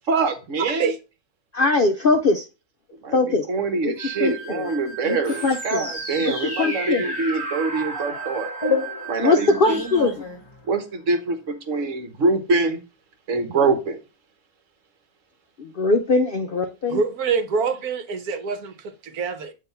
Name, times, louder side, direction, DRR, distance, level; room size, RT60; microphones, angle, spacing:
voice 1, 0.1-0.9 3.0-8.5 9.1-9.8 10.7-12.8 13.3-14.0, right 3 dB, 55° right, 1.4 m, -24 dB
voice 2, 0.6-1.0 16.9-19.5, right 5 dB, 75° right, 1.3 m, -26 dB
voice 3, 1.5-2.4 3.1-3.5 3.8-3.9 4.2-4.7 5.1-5.2 5.4-5.8 6.6-7.0 9.2-10.2 15.6-17.0, left 3 dB, 60° left, 0.6 m, -21 dB
sound 1, 4.0-10.1, right 8 dB, 40° right, 1.8 m, -36 dB
sound 2, 5.2-10.9, left 3 dB, 20° left, 1.0 m, -31 dB
8.8 x 2.9 x 5.5 m
omnidirectional pair, 1.6 m